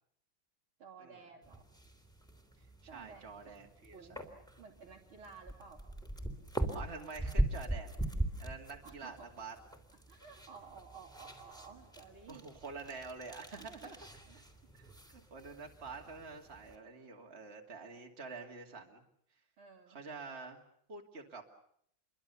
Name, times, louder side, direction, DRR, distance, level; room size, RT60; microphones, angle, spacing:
voice 1, 0.8-1.7 2.9-3.6 3.9-4.2 4.6-5.8 8.8-9.3 10.1-12.4 13.6-13.9 14.3-14.4 15.4-15.5 19.6-20.0, right 5 dB, 80° right, -1 dB, 4.2 m, -54 dB
sound 1, 1.4-16.7, right 1 dB, ahead, 3.3 m, -41 dB
voice 2, 2.8-4.0 6.7-7.9 8.4-9.6 12.3-14.0 14.7-19.0 19.9-20.6 20.9-21.4, right 4 dB, 30° right, 2 dB, 2.6 m, -47 dB
28.5 x 23.0 x 7.0 m, 0.68 s
omnidirectional pair, 2.3 m